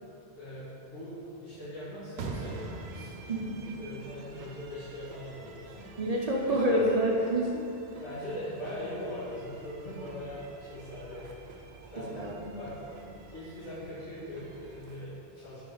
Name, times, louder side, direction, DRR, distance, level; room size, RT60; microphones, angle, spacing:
voice 1, 0.3-1.1 1.4-5.8 6.4-7.0 8.0-11.3 11.9-12.3 12.6-12.9 13.3-15.6, left 1 dB, 80° left, -13 dB, 1.9 m, -41 dB
sound 1, 2.2-15.1, right 3 dB, 70° right, 0.8 m, -47 dB
voice 2, 3.3-3.6 6.0-7.6 12.1-12.6, right 1 dB, 50° right, -2 dB, 0.5 m, -28 dB
5.0 x 4.9 x 3.8 m, 2.7 s
omnidirectional pair, 1.1 m